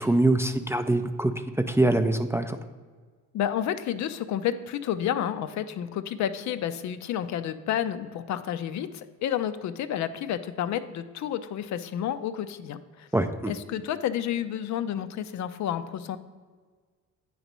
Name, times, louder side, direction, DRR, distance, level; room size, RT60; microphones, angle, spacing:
voice 1, 0.0-1.3 1.7-2.6 13.1-13.5, right 2 dB, 10° right, 6 dB, 0.3 m, -23 dB
voice 2, 3.3-13.1 13.5-16.2, left 10 dB, 70° left, 12 dB, 0.5 m, -30 dB
9.0 x 3.1 x 5.2 m, 1.5 s
cardioid pair, 90°, 30 cm